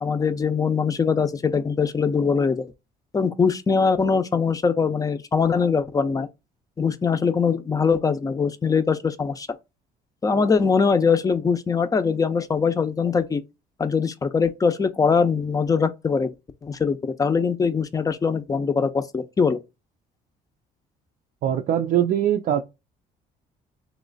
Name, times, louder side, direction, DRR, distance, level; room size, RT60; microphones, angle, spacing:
voice 1, 0.0-2.7 3.1-6.3 6.8-9.5 10.2-13.4 13.8-16.3 16.6-19.6, left 5 dB, 20° left, 0.5 m, -22 dB
voice 2, 21.4-22.6, right 10 dB, 50° right, 0.5 m, -22 dB
3.2 x 3.0 x 3.8 m
cardioid pair, 110°, 17 cm